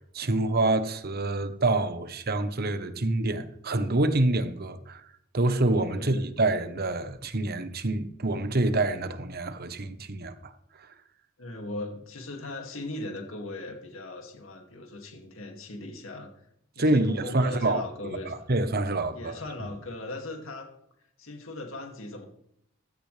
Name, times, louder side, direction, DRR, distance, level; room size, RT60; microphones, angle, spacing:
voice 1, 0.1-5.0 5.3-10.5 16.8-17.8 18.5-19.3, right 2 dB, 50° right, 1.2 m, -26 dB
voice 2, 5.9-6.3 11.4-16.5 16.7-18.5 19.1-20.7 21.2-22.3, left 2 dB, 80° left, 2.5 m, -38 dB
15.5 x 13.5 x 3.4 m
head